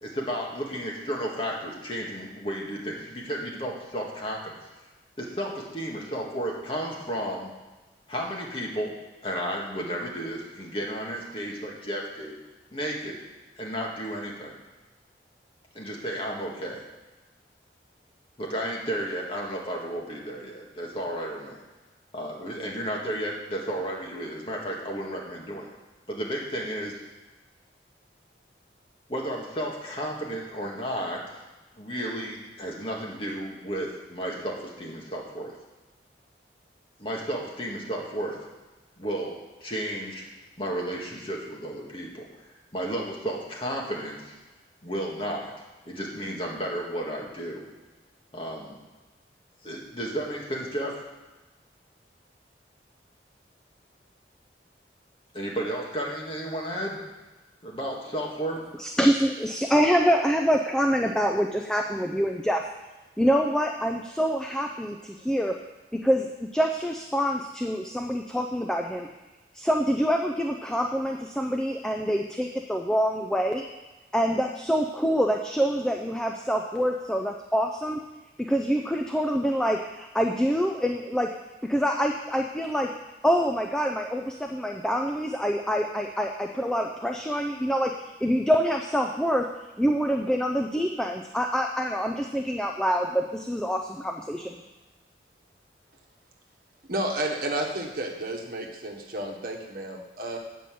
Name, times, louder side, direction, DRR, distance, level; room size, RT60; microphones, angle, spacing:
voice 1, 0.0-4.6 5.2-7.5 8.1-9.0 9.2-12.4 12.7-13.2 13.6-14.6 15.7-16.8 18.4-21.6 22.1-25.7 26.1-27.0 29.1-31.4 31.8-35.6 37.0-38.4 39.0-40.2 40.6-44.3 44.8-45.5 45.9-47.7 48.3-48.8 49.6-51.0 55.3-57.0 57.6-58.7, right 1 dB, 30° left, -2 dB, 1.8 m, -33 dB
voice 2, 58.8-62.7 63.2-65.6 66.0-69.1 69.5-73.6 74.1-78.0 78.4-81.3 81.6-82.9 83.2-87.9 88.2-89.5 89.8-94.6, equal, 5° left, 3 dB, 0.4 m, -26 dB
voice 3, 96.9-100.4, right 1 dB, 55° right, 1 dB, 1.4 m, -31 dB
9.0 x 5.5 x 7.6 m, 1.2 s
head